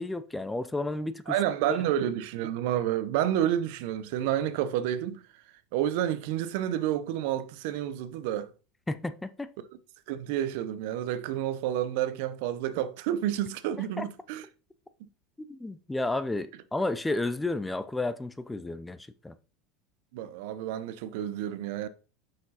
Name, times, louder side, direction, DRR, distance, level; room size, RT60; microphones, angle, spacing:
voice 1, 0.0-1.3 8.9-9.5 14.0-14.1 15.4-19.3, left 2 dB, 10° left, 0.5 m, -32 dB
voice 2, 1.3-5.2 5.7-8.5 10.1-14.5 20.1-21.9, right 11 dB, 70° right, 0.7 m, -29 dB
6.0 x 5.1 x 4.1 m
supercardioid pair, 125°, 0 cm